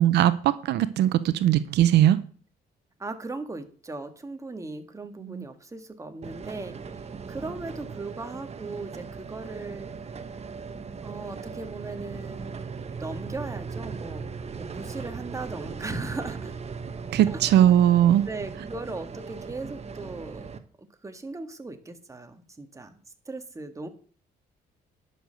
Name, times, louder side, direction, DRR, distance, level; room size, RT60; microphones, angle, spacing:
voice 1, 0.0-2.2 5.2-5.4 17.1-18.3, right 11 dB, 80° right, 0.7 m, -20 dB
voice 2, 3.0-6.8 7.3-9.9 11.0-16.5 17.3-17.7 18.3-20.5 20.8-23.0 23.3-23.9, right 3 dB, 20° right, 1.7 m, -38 dB
sound 1, 6.2-20.6, right 5 dB, 40° right, 1.2 m, -38 dB
11.0 x 6.6 x 6.6 m
cardioid pair, 100°, 17 cm